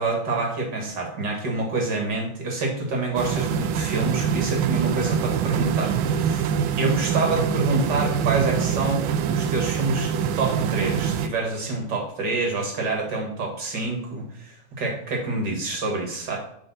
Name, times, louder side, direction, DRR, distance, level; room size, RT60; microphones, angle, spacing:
voice 1, 0.0-6.5 6.8-16.4, right 3 dB, 60° right, 1 dB, 2.3 m, -27 dB
sound 1, 3.2-11.3, right 8 dB, 80° right, 1.4 m, -24 dB
8.7 x 4.5 x 4.1 m, 0.70 s
omnidirectional pair, 2.2 m